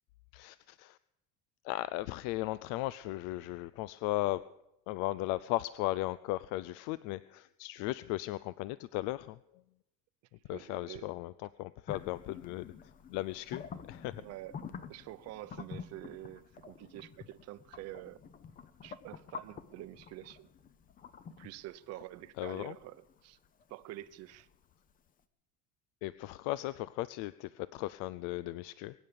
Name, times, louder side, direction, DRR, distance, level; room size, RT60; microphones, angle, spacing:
voice 1, 0.3-1.0 1.6-4.4 4.9-9.4 10.5-11.3 11.6-12.7 13.1-14.1 22.4-22.7 26.0-28.9, left 17 dB, 60° left, 0.5 m, -36 dB
voice 2, 10.5-11.1 14.2-14.6 14.9-18.2 18.8-20.5 21.4-23.4 23.7-24.5, right 15 dB, 45° right, 0.7 m, -47 dB
sound 1, 11.9-24.7, left 6 dB, 25° left, 0.7 m, -49 dB
22.0 x 9.4 x 6.8 m
cardioid pair, 165°, 35 cm